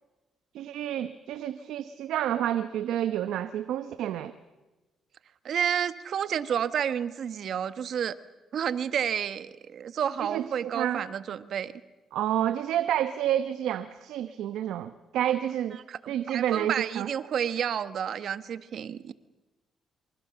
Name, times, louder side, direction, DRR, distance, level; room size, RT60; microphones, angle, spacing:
voice 1, 0.5-4.3 10.2-11.1 12.1-15.8 16.1-17.1, right 11 dB, 85° right, 10 dB, 0.9 m, -29 dB
voice 2, 5.4-8.2 8.5-11.7 15.9-19.1, right 8 dB, 65° right, 12 dB, 1.2 m, -30 dB
26.5 x 25.0 x 7.0 m, 1.2 s
cardioid pair, 90°, 0 cm